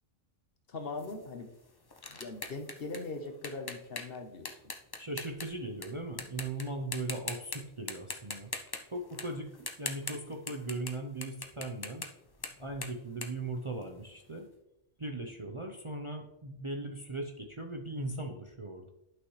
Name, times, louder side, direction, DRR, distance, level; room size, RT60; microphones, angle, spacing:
voice 1, 0.7-1.5 2.1-4.7, left 3 dB, 55° left, 6 dB, 1.1 m, -41 dB
sound 1, 1.0-5.9 6.2-6.6 6.9-7.6 7.9-10.9 11.2-14.2, left 3 dB, 25° left, 0.6 m, -41 dB
voice 2, 5.0-8.5 8.9-12.1 12.6-14.5 15.0-18.9, right 2 dB, 30° right, 2 dB, 0.7 m, -39 dB
11.0 x 6.1 x 3.2 m, 0.84 s
omnidirectional pair, 1.3 m